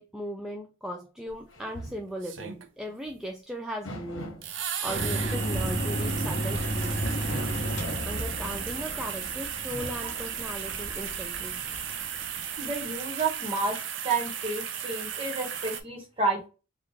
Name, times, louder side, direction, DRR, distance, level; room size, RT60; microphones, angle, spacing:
voice 1, 0.0-4.4 4.8-7.0 8.0-11.6, equal, 5° right, 0.3 m, -37 dB
sound 1, 1.3-1.4 2.2-2.9 4.4-15.8, right 8 dB, 65° right, 0.5 m, -35 dB
sound 2, 1.5-2.1 3.0-3.2 3.8-4.5 4.9-5.9 7.0-8.4 9.5-10.3, equal, 80° left, 1.1 m, -40 dB
sound 3, 4.9-13.0, right 1 dB, 35° left, 1.0 m, -33 dB
voice 2, 12.6-13.8 14.0-16.5, right 3 dB, 25° right, 1.1 m, -30 dB
3.1 x 2.3 x 3.5 m
head